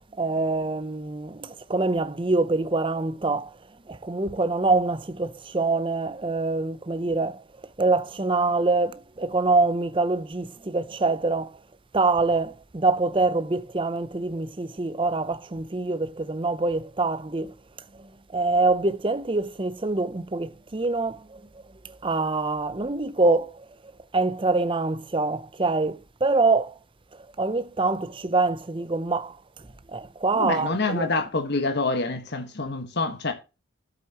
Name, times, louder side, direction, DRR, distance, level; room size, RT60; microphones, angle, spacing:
voice 1, 0.2-3.5 3.9-7.4 7.8-11.6 11.9-17.5 17.9-23.7 24.1-26.7 27.4-29.4 29.9-31.1, right 3 dB, 25° right, 0.6 m, -25 dB
voice 2, 30.3-33.3, left 3 dB, 50° left, 1.5 m, -26 dB
12.5 x 8.0 x 3.0 m
head